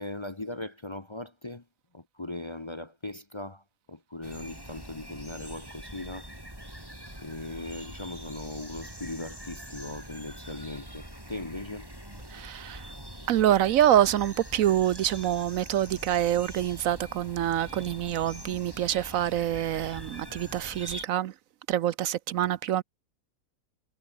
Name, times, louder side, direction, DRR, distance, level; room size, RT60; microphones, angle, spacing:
voice 1, 0.0-1.6 1.9-3.6 3.9-6.3 7.2-11.9, left 2 dB, 25° left, 0.9 m, -39 dB
sound 1, 4.2-21.0, equal, 15° right, 7.0 m, -44 dB
voice 2, 12.3-12.9 13.3-21.3 21.7-22.8, right 11 dB, 70° right, 1.0 m, -26 dB
omnidirectional pair, 1.6 m